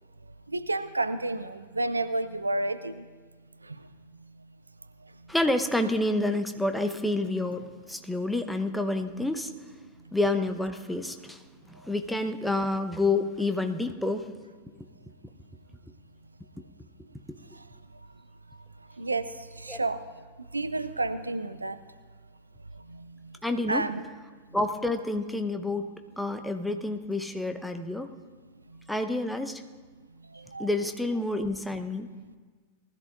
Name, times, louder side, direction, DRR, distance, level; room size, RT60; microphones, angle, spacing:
voice 1, 0.5-3.1 3.6-3.8 19.0-20.2 20.5-21.8 22.9-23.4 23.7-24.0 30.3-30.7, right 2 dB, 80° right, 13 dB, 0.4 m, -31 dB
voice 2, 5.3-9.5 10.1-11.4 11.7-14.3 19.7-19.8 23.4-23.8 24.5-25.9 26.2-28.1 28.9-29.6 30.6-32.1, left 2 dB, 5° left, 7 dB, 0.8 m, -28 dB
19.5 x 13.0 x 2.6 m, 1.4 s
figure-of-eight pair, 90°, 0 cm